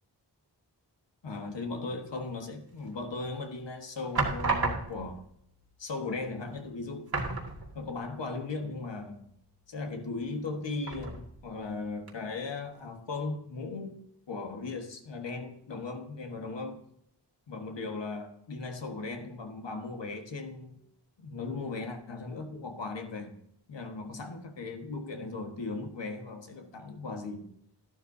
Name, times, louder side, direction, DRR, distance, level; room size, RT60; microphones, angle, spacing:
voice 1, 1.2-5.3 5.8-7.3 7.7-9.3 9.7-16.8 17.5-20.8 21.2-23.3 23.7-27.5, left 3 dB, 80° left, 1.5 m, -37 dB
sound 1, 2.9-3.4 4.1-5.2 6.2-6.3 6.6-6.7 7.1-8.1 8.4-8.5 10.8-11.5 12.1-12.2, right 3 dB, 60° right, 2.2 m, -32 dB
12.5 x 11.5 x 2.7 m
wide cardioid pair, 80°, 43 cm